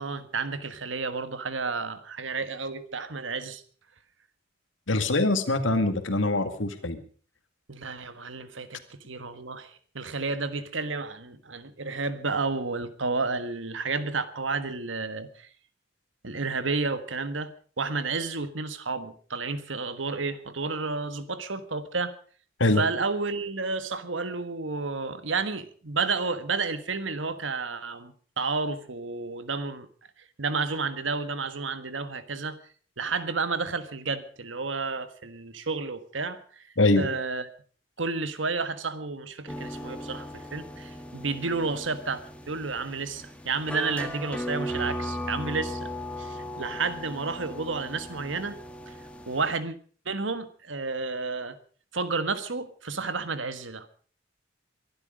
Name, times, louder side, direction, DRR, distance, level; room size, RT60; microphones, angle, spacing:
voice 1, 0.0-3.6 7.7-15.5 16.2-22.1 22.8-29.9 30.4-32.6 33.0-36.7 37.0-37.5 38.0-45.9 46.2-48.6 48.9-49.0 49.3-49.8 50.0-51.6 51.9-53.9, right 4 dB, 85° right, 12 dB, 1.5 m, -31 dB
voice 2, 4.9-7.0 22.6-22.8 36.8-37.1, left 2 dB, 85° left, 9 dB, 2.1 m, -23 dB
sound 1, 39.5-49.6, equal, 5° left, 1.7 m, -37 dB
23.0 x 11.5 x 5.1 m, 0.43 s
head